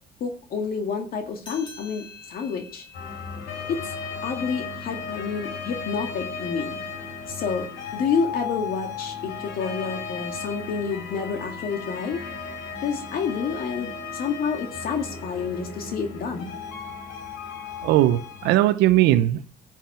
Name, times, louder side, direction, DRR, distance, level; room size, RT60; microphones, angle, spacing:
voice 1, 0.2-2.9 3.7-4.0 4.2-6.7 7.3-7.7 7.9-12.2 12.8-16.5, left 5 dB, 60° left, 2.1 m, -29 dB
sound 1, 1.4-6.3, left 4 dB, 25° left, 3.3 m, -49 dB
sound 2, 2.9-18.5, left 5 dB, 85° left, 3.3 m, -35 dB
voice 2, 17.8-19.5, right 14 dB, 90° right, 0.7 m, -19 dB
10.5 x 7.4 x 7.3 m
cardioid pair, 110°, 17 cm